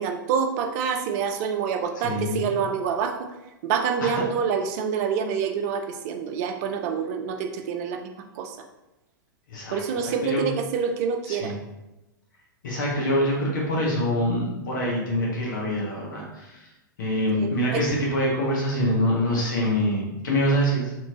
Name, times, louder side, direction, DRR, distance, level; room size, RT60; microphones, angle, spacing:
voice 1, 0.0-3.3 3.6-8.1 8.4-8.6 9.7-11.5 17.4-17.8, right 6 dB, 50° right, 6 dB, 0.4 m, -27 dB
voice 2, 2.0-2.5 4.0-4.2 9.5-10.4 11.3-11.6 12.6-16.6 17.0-20.9, equal, 65° left, -4 dB, 1.0 m, -25 dB
3.0 x 2.6 x 2.8 m, 0.98 s
hypercardioid pair, 105°, 11 cm